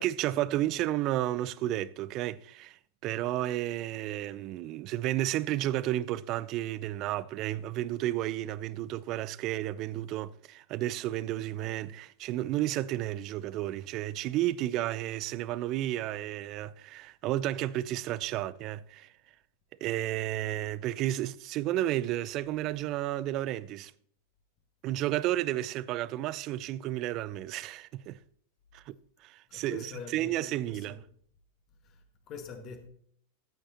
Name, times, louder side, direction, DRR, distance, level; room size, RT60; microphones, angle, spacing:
voice 1, 0.0-19.1 19.8-23.9 24.8-28.2 28.7-29.0 29.2-31.0, right 14 dB, 40° right, 0.5 m, -32 dB
voice 2, 29.5-31.0 31.8-32.9, left 5 dB, 35° left, 1.8 m, -45 dB
14.0 x 8.8 x 2.9 m
figure-of-eight pair, 90°, 0 cm